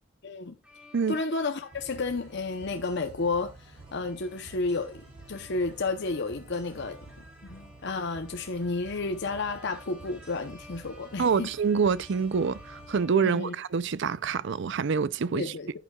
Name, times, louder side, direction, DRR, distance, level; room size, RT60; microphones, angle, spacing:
voice 1, 0.2-0.6 1.1-7.0 7.5-11.5 13.2-13.5 15.3-15.7, left 3 dB, 55° left, 0.8 m, -31 dB
sound 1, 0.6-14.3, left 1 dB, 5° right, 2.6 m, -55 dB
sound 2, 1.7-13.0, right 2 dB, 30° right, 6.3 m, -50 dB
voice 2, 11.2-15.5, right 5 dB, 60° right, 0.5 m, -26 dB
11.0 x 9.0 x 2.3 m
head